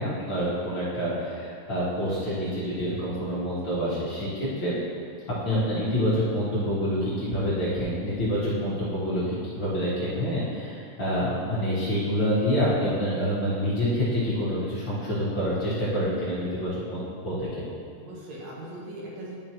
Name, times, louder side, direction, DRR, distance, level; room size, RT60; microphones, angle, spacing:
voice 1, 0.0-4.7 5.4-17.6, equal, 45° left, -10 dB, 2.0 m, -27 dB
voice 2, 3.3-4.0 18.0-19.3, right 1 dB, 70° right, -5 dB, 2.4 m, -41 dB
11.0 x 5.1 x 3.0 m, 2.3 s
omnidirectional pair, 3.3 m